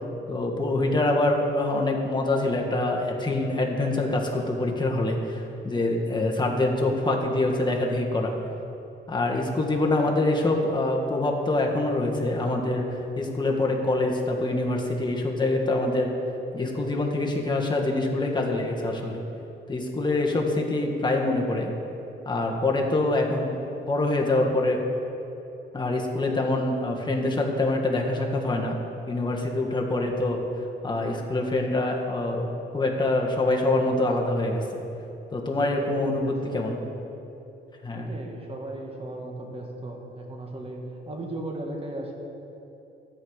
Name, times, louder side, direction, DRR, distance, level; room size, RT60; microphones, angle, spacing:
voice 1, 0.3-8.3 9.1-12.9 13.1-16.1 16.5-19.2 19.7-21.7 22.2-23.5 23.8-24.8 25.7-28.8 29.1-30.4 30.8-34.8 35.3-36.8 37.8-38.1, left 2 dB, 20° left, 0 dB, 1.7 m, -25 dB
voice 2, 35.6-36.4 37.9-42.1, right 2 dB, 30° right, 0 dB, 2.0 m, -36 dB
12.5 x 5.5 x 8.1 m, 2.9 s
cardioid pair, 90°, 20 cm